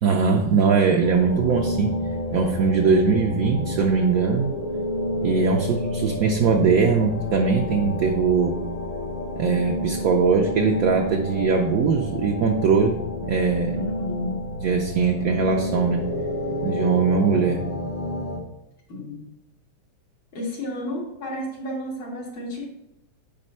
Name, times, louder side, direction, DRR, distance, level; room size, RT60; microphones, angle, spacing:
voice 1, 0.0-1.9 2.3-4.6 5.2-8.6 9.4-13.8 14.6-16.0 16.6-17.6, right 5 dB, 65° right, 2 dB, 0.9 m, -21 dB
sound 1, 1.0-18.4, left 1 dB, 50° left, 0.5 m, -30 dB
voice 2, 13.7-14.4 18.9-19.3 20.3-22.7, left 1 dB, 85° left, -3 dB, 2.6 m, -32 dB
5.3 x 5.0 x 5.4 m, 0.82 s
omnidirectional pair, 2.1 m